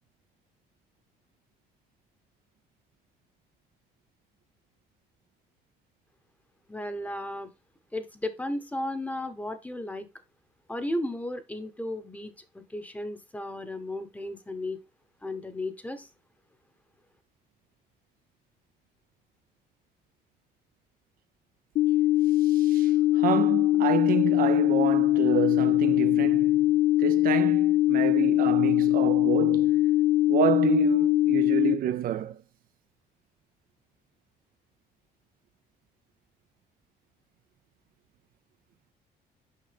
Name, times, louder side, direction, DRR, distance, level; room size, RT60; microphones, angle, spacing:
voice 1, 6.7-7.5 7.9-10.1 10.7-14.8 15.2-16.1, left 1 dB, 10° left, 0.9 m, -34 dB
sound 1, 21.8-31.8, left 15 dB, 45° left, 0.4 m, -22 dB
voice 2, 22.4-26.6 27.0-29.8 30.3-32.4, right 12 dB, 55° right, 0.4 m, -29 dB
6.6 x 5.1 x 3.3 m
cardioid pair, 110°, 17 cm